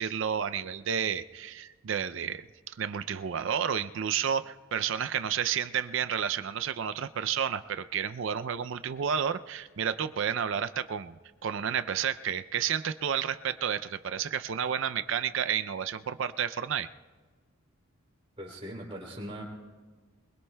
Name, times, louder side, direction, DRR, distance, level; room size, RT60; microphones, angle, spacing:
voice 1, 0.0-11.2 11.4-16.9, right 8 dB, 60° right, 12 dB, 0.4 m, -31 dB
voice 2, 18.4-19.4, equal, 25° right, -2 dB, 3.1 m, -40 dB
24.0 x 22.0 x 2.2 m, 1.4 s
head